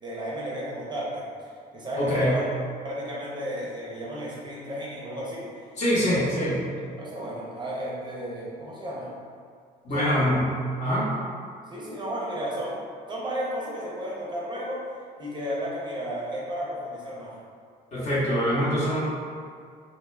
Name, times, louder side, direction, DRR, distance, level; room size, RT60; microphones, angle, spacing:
voice 1, 0.0-2.4 2.8-5.5 6.0-6.3 6.7-9.1 9.9-10.3 11.7-12.8 13.1-14.8 15.2-17.4, equal, 25° right, -6 dB, 0.6 m, -33 dB
voice 2, 2.0-2.3 5.8-6.6 9.8-10.5 10.8-11.0 17.9-19.0, equal, 45° left, -8 dB, 1.0 m, -24 dB
2.2 x 2.1 x 3.2 m, 2.2 s
cardioid pair, 110°, 17 cm